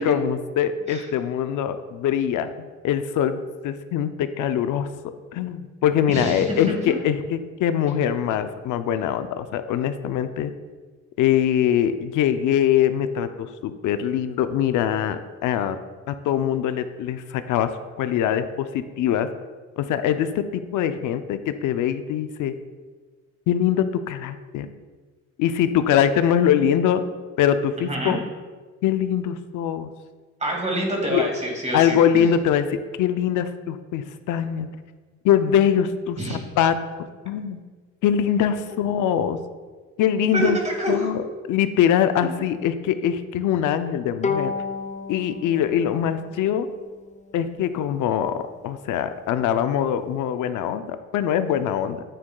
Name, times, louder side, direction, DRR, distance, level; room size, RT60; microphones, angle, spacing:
voice 1, 0.0-4.9 5.3-10.5 11.2-15.8 16.1-17.7 18.0-19.3 19.8-22.5 23.5-24.7 25.4-27.0 27.4-28.2 28.8-29.9 31.1-31.3 31.7-34.7 35.2-36.7 37.3-37.6 38.0-39.4 40.0-40.6 40.9-44.5 45.1-46.7 47.3-52.0, left 9 dB, 80° left, 10 dB, 0.5 m, -23 dB
voice 2, 6.1-7.0 27.8-28.2 30.4-32.3 36.2-36.4 40.3-41.1, right 1 dB, 20° right, 0 dB, 2.1 m, -27 dB
Bowed string instrument, 44.2-47.6, left 5 dB, 25° left, 0.4 m, -32 dB
9.3 x 7.0 x 2.3 m, 1.4 s
cardioid pair, 90°, 30 cm